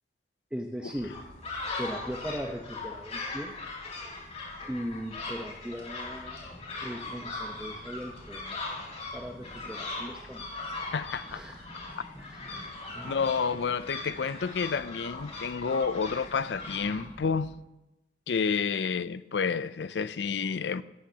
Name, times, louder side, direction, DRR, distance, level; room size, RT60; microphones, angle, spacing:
voice 1, 0.5-1.2 1.8-3.5 4.7-6.4 6.8-8.6 9.1-10.5 11.3-11.7 12.2-12.6 12.9-13.6, equal, 5° right, 0.9 m, -39 dB
sound 1, 0.9-17.5, equal, 10° left, 3.9 m, -52 dB
sound 2, 1.1-17.0, left 3 dB, 40° left, 4.6 m, -39 dB
voice 2, 10.9-11.4 13.0-17.5 18.3-20.8, left 5 dB, 75° left, 0.5 m, -30 dB
18.0 x 15.5 x 2.9 m
head